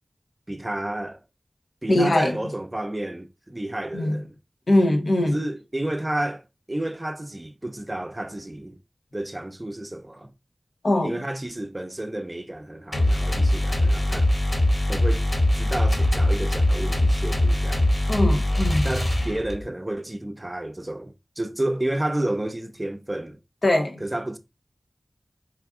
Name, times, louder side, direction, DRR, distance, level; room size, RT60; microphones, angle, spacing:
voice 1, 0.5-1.2 1.8-4.3 5.3-8.8 9.1-10.3 11.0-14.3 14.9-15.3 15.5-17.9 18.8-23.4 24.0-24.4, right 1 dB, 25° right, 0.6 m, -31 dB
voice 2, 1.9-2.4 3.9-4.2 4.7-5.4 10.8-11.1 18.1-18.9 23.6-24.0, left 1 dB, 75° left, 0.8 m, -21 dB
sound 1, 12.9-19.7, left 1 dB, 55° left, 1.7 m, -22 dB
4.8 x 2.4 x 3.6 m
wide cardioid pair, 45°, 0 cm